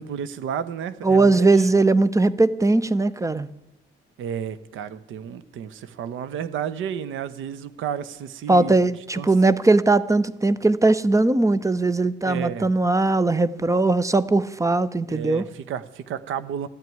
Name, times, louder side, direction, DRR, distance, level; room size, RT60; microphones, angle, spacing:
voice 1, 0.0-1.5 4.2-8.8 9.2-9.3 12.2-12.7 15.1-16.7, right 8 dB, 80° right, 15 dB, 1.0 m, -32 dB
voice 2, 1.0-3.5 8.5-15.4, right 2 dB, 15° right, 17 dB, 0.7 m, -19 dB
13.5 x 9.5 x 9.1 m, 0.92 s
cardioid pair, 90°, 20 cm